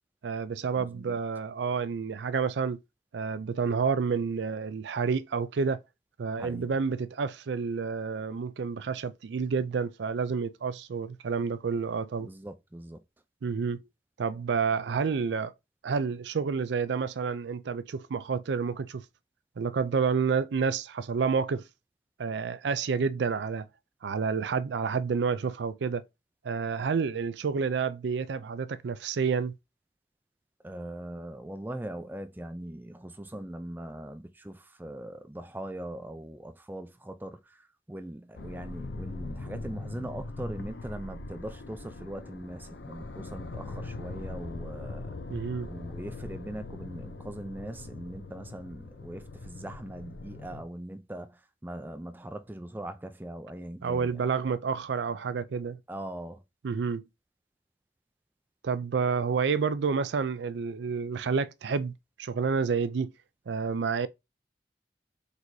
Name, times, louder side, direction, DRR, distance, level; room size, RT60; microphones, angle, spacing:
voice 1, 0.2-2.8 3.1-5.8 6.2-12.3 13.4-13.8 14.2-15.5 15.8-19.0 19.6-21.6 22.2-23.7 24.0-26.0 26.4-29.5 45.3-45.7 53.8-55.8 56.6-57.0 58.6-61.9 62.2-63.1 63.5-64.1, right 5 dB, 85° right, 0.4 m, -29 dB
voice 2, 0.8-1.2 6.4-6.7 12.2-13.0 30.6-45.1 45.7-54.3 55.9-56.4, right 1 dB, 10° right, 0.4 m, -41 dB
sound 1, 38.3-50.6, left 2 dB, 80° left, 0.6 m, -41 dB
4.6 x 4.1 x 2.7 m
head